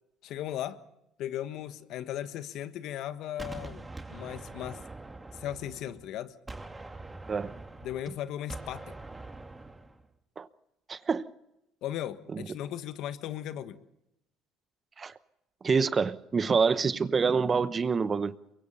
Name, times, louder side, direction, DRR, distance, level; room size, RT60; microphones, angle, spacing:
voice 1, 0.2-0.8 1.2-4.8 5.3-6.3 7.8-8.9 11.8-13.8, left 11 dB, 65° left, 1.4 m, -37 dB
Gunshot gunfire, 3.4-6.1 6.5-10.0, right 2 dB, 15° right, 2.2 m, -44 dB
voice 2, 10.9-11.3 12.3-12.5 15.0-15.1 15.6-18.3, right 5 dB, 35° right, 0.9 m, -26 dB
23.5 x 23.0 x 5.7 m
supercardioid pair, 80°, 0 cm